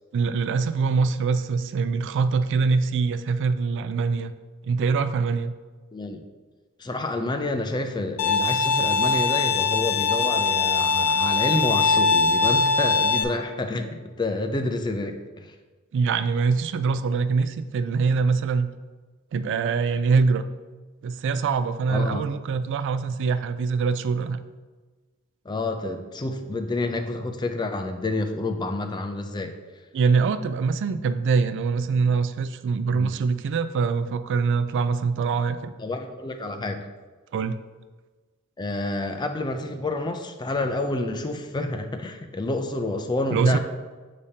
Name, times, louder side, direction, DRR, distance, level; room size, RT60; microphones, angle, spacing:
voice 1, 0.1-4.3 4.6-5.5 15.9-18.7 19.3-20.5 21.0-24.4 29.9-35.7 37.3-37.6 43.3-43.6, right 5 dB, 55° right, 11 dB, 0.3 m, -23 dB
voice 2, 5.9-6.2 6.8-15.5 21.9-22.2 25.5-29.5 32.9-33.1 35.8-36.9 38.6-43.6, left 2 dB, 20° left, 6 dB, 0.4 m, -29 dB
Bowed string instrument, 8.2-13.2, left 4 dB, 85° left, 0.6 m, -22 dB
6.9 x 4.9 x 2.8 m, 1.3 s
head